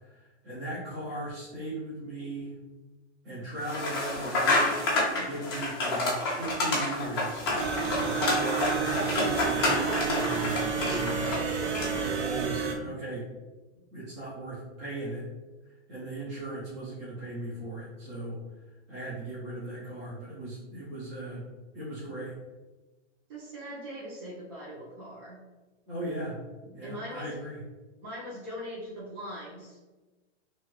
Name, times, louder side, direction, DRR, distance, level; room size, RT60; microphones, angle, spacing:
voice 1, 0.1-2.5 3.2-4.8 5.1-7.4 8.0-11.2 12.0-13.3 13.9-15.2 15.9-18.4 18.9-21.4 21.7-22.4 25.9-26.4 26.7-27.6, right 1 dB, 25° right, -11 dB, 0.6 m, -37 dB
sound 1, 3.6-12.1, left 2 dB, 20° left, 0.4 m, -29 dB
sound 2, 7.6-12.7, right 6 dB, 70° right, 0.6 m, -30 dB
voice 2, 10.8-11.2 23.3-25.4 26.8-27.3 28.0-29.8, equal, 50° right, -10 dB, 1.0 m, -41 dB
2.7 x 2.4 x 3.0 m, 1.2 s
hypercardioid pair, 165°, 36 cm